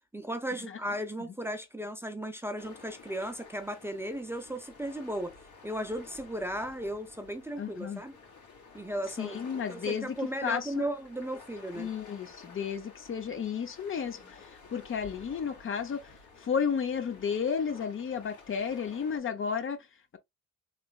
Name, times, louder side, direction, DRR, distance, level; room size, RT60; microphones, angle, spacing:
voice 1, 0.1-5.4 5.6-8.2 8.7-9.4 9.7-11.9, right 1 dB, 10° right, 0.5 m, -36 dB
sound 1, 2.6-19.2, left 4 dB, 75° left, 1.8 m, -52 dB
voice 2, 7.6-8.0 9.2-10.8 11.7-16.1 16.4-19.9, left 7 dB, 45° left, 0.7 m, -33 dB
3.3 x 3.0 x 2.3 m
cardioid pair, 90°, 30 cm